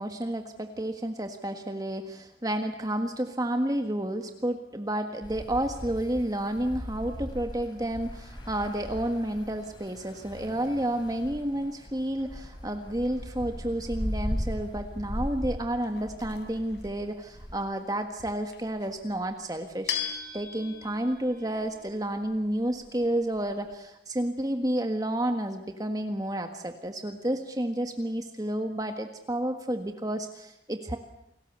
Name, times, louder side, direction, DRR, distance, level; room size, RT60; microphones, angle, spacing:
voice 1, 0.0-20.0 20.3-31.0, right 1 dB, 20° right, 5 dB, 1.6 m, -30 dB
sound 1, 5.2-17.5, equal, 25° left, 4.6 m, -38 dB
sound 2, 14.4-23.8, left 8 dB, 70° left, 3.8 m, -41 dB
29.0 x 19.5 x 8.2 m, 0.81 s
head